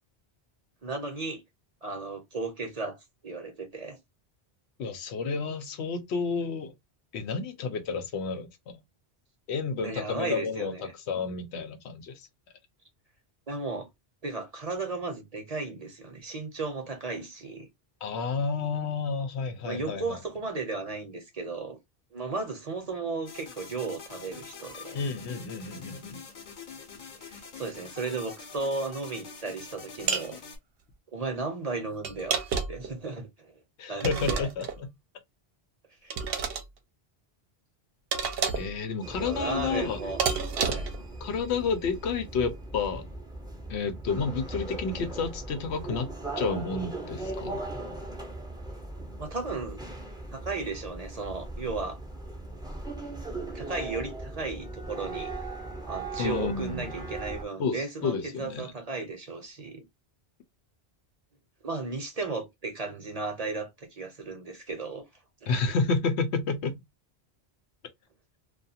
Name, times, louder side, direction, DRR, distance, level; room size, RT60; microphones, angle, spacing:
voice 1, 0.8-1.4 1.8-3.0 3.2-4.0 9.8-10.9 13.5-13.9 14.2-17.7 19.6-21.8 22.1-25.0 27.2-30.4 31.1-32.4 32.7-33.5 33.9-34.5 36.0-36.2 39.1-40.2 40.5-40.9 49.2-49.8 50.3-52.0 53.5-55.3 55.9-59.8 61.6-65.0 65.4-65.7, right 3 dB, 40° right, 0.7 m, -35 dB
voice 2, 4.8-6.7 7.1-8.8 9.5-10.7 11.1-12.2 18.0-20.2 24.9-26.2 33.8-34.9 38.5-40.0 41.2-43.1 43.7-46.1 46.4-47.6 56.2-56.9 57.6-58.7 65.5-66.8, left 5 dB, 85° left, 0.9 m, -30 dB
sound 1, 23.3-30.6, left 5 dB, 50° left, 0.8 m, -45 dB
sound 2, 30.1-30.3 32.0-32.9 34.0-34.8 36.1-36.6 38.1-38.8 40.2-41.0, right 5 dB, 70° right, 0.8 m, -29 dB
sound 3, 39.0-57.4, right 2 dB, 5° right, 0.5 m, -38 dB
2.4 x 2.3 x 2.7 m
omnidirectional pair, 1.1 m